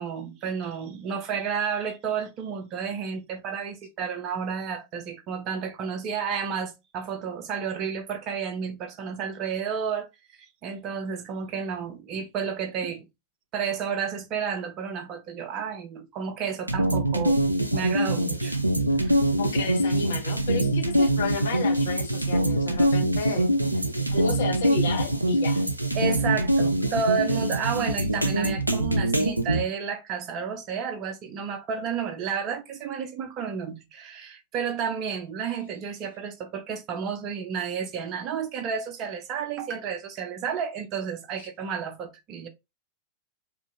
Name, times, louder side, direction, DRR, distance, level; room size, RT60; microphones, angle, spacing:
voice 1, 0.0-10.1 10.4-13.1 13.5-17.4 17.7-18.6 23.9-24.0 25.9-42.5, right 6 dB, 35° right, 0.6 m, -31 dB
sound 1, 16.7-29.6, right 1 dB, 85° right, 0.3 m, -24 dB
voice 2, 19.4-23.5 24.1-25.6, left 4 dB, 60° left, 0.8 m, -32 dB
2.8 x 2.6 x 2.5 m
figure-of-eight pair, 90°, 0 cm